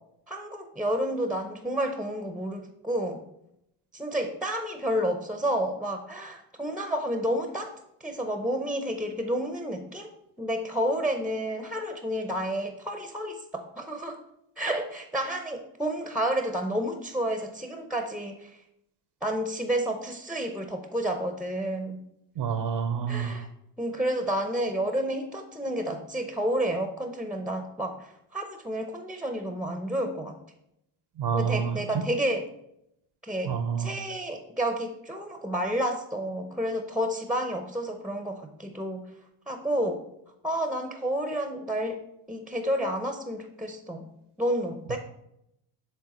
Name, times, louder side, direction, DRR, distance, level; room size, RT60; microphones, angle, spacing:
voice 1, 0.3-3.2 3.9-7.7 8.0-10.1 10.4-14.2 14.6-18.6 19.2-22.0 23.1-23.5 23.8-30.3 31.3-32.5 33.2-39.1 39.5-40.0 40.4-42.0 42.3-44.1 44.4-45.0, right 1 dB, ahead, 5 dB, 0.6 m, -30 dB
voice 2, 22.4-23.3 31.2-31.8 33.4-33.9, right 7 dB, 55° right, 8 dB, 0.6 m, -28 dB
7.3 x 3.5 x 4.2 m, 0.81 s
cardioid pair, 80°, 49 cm